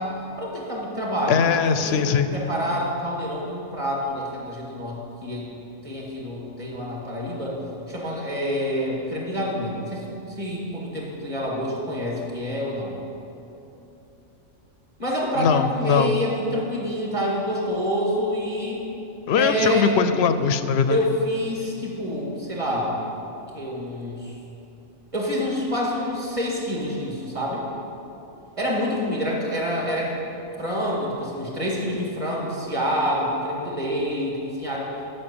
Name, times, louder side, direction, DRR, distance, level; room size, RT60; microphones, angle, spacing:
voice 1, 0.0-2.0 2.3-5.5 5.8-7.6 7.9-10.1 10.4-13.0 15.0-18.9 19.4-19.9 20.9-23.0 23.5-24.3 25.1-27.7 28.6-30.2 30.6-34.9, equal, 25° right, -3 dB, 2.2 m, -27 dB
voice 2, 1.3-2.3 15.4-16.1 19.3-21.0, left 6 dB, 65° left, 11 dB, 0.7 m, -21 dB
8.7 x 6.8 x 8.6 m, 2.9 s
omnidirectional pair, 1.3 m